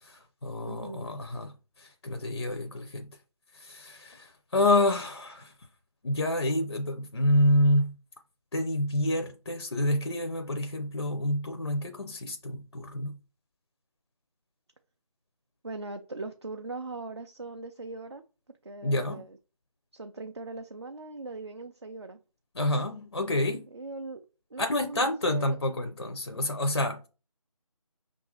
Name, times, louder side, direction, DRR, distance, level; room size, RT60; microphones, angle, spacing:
voice 1, 0.0-3.1 3.5-5.5 6.0-7.9 8.5-13.2 18.8-19.3 22.5-23.7 24.6-27.1, left 1 dB, 45° left, 0.5 m, -28 dB
voice 2, 0.6-1.1 15.6-18.2 18.6-19.3 19.9-22.2 23.7-24.2 24.5-25.6, right 3 dB, 45° right, 0.4 m, -40 dB
5.4 x 2.5 x 3.1 m
figure-of-eight pair, 160°, 19 cm